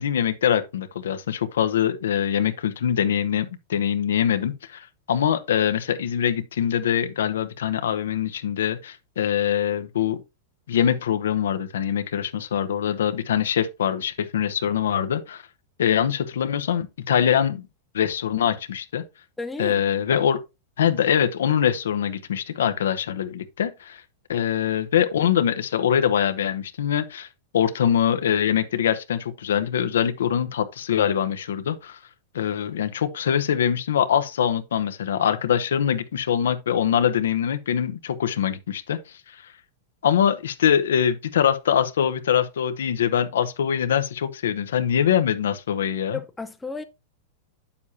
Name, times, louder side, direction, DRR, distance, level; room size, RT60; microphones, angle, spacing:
voice 1, 0.0-10.2 10.7-15.4 15.8-17.7 17.9-19.0 19.6-20.4 20.8-24.0 24.3-27.3 27.5-32.0 32.3-39.0 40.0-46.2, left 9 dB, 85° left, 0.9 m, -23 dB
voice 2, 19.4-19.8 46.1-46.8, left 3 dB, 10° left, 0.6 m, -33 dB
8.3 x 7.0 x 2.8 m
hypercardioid pair, 130°, 0 cm